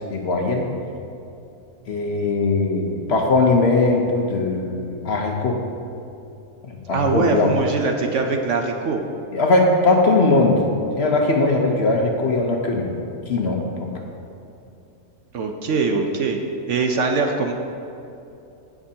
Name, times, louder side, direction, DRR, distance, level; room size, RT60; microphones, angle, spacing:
voice 1, 0.1-0.7 1.9-5.6 6.7-7.5 9.3-12.9 13.3-13.9, left 3 dB, 55° left, 1 dB, 0.9 m, -20 dB
voice 2, 6.9-9.0 15.3-16.4 16.7-17.5, right 4 dB, 65° right, 3 dB, 0.9 m, -22 dB
16.0 x 6.0 x 2.8 m, 2.7 s
omnidirectional pair, 1.6 m